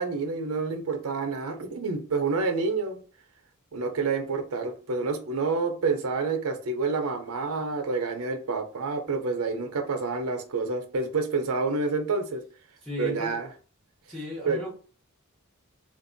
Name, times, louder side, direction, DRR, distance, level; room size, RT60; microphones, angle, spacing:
voice 1, 0.0-3.0 3.7-12.4 13.0-13.5 14.4-14.6, right 4 dB, 85° right, 0.6 m, -28 dB
voice 2, 12.8-13.4 14.1-14.7, left 1 dB, ahead, 0.8 m, -35 dB
3.7 x 2.6 x 2.6 m
head